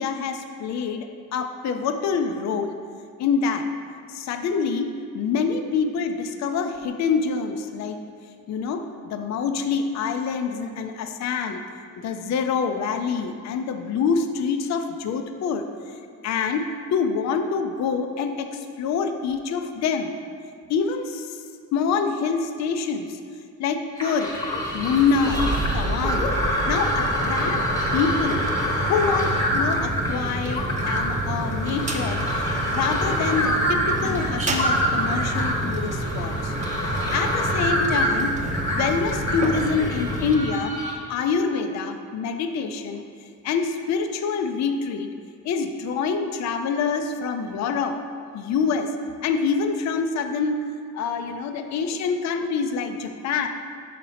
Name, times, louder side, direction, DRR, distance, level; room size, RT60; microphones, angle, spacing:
voice 1, 0.0-2.8 3.2-3.6 4.1-8.0 8.5-11.6 12.0-15.7 16.2-20.1 20.7-21.4 21.7-23.2 23.6-24.3 24.7-25.4 25.7-26.3 26.7-27.6 27.9-28.4 28.9-32.2 32.7-36.5 37.1-38.3 38.6-40.8 41.1-43.0 43.4-45.1 45.4-48.0 48.3-48.9 49.2-50.7 50.9-53.5, left 5 dB, 55° left, 6 dB, 0.5 m, -26 dB
sound 1, 24.0-40.9, equal, 10° left, 1.0 m, -26 dB
sound 2, 24.3-40.4, right 1 dB, 20° right, 0.7 m, -29 dB
5.2 x 4.2 x 5.6 m, 2.2 s
cardioid pair, 110°, 33 cm